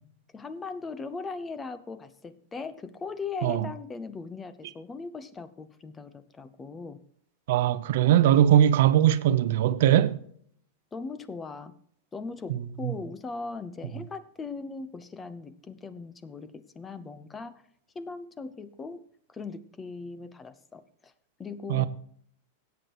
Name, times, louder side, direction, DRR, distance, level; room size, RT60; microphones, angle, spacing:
voice 1, 0.3-7.0 10.9-11.7 12.1-17.6 17.9-19.0 19.3-21.1 21.4-21.9, left 4 dB, 15° left, 0.8 m, -39 dB
voice 2, 7.5-10.2 12.8-12.9 21.7-21.9, right 11 dB, 70° right, 0.7 m, -20 dB
16.5 x 8.2 x 3.0 m
supercardioid pair, 140°, 0 cm